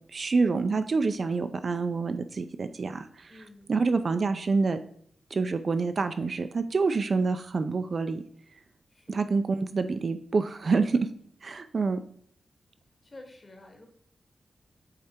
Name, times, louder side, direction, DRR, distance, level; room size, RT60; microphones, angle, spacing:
voice 1, 0.1-3.4 3.7-4.8 5.3-8.2 9.1-11.0 11.4-12.0, right 4 dB, 45° right, 9 dB, 0.4 m, -27 dB
voice 2, 3.3-3.7 8.9-9.3 13.0-13.9, left 2 dB, 30° left, 4 dB, 1.2 m, -50 dB
8.4 x 3.3 x 4.4 m, 0.64 s
wide cardioid pair, 175°, 0 cm